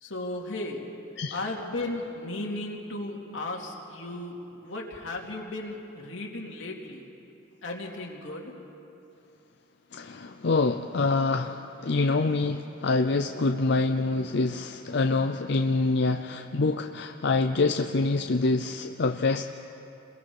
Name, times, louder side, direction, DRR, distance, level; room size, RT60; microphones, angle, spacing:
voice 1, 0.0-0.8 1.3-4.4 4.6-7.0 7.6-8.5, left 2 dB, 85° left, -1 dB, 2.7 m, -35 dB
voice 2, 9.9-19.4, left 3 dB, 60° left, 6 dB, 0.6 m, -26 dB
29.5 x 21.5 x 4.8 m, 2.8 s
head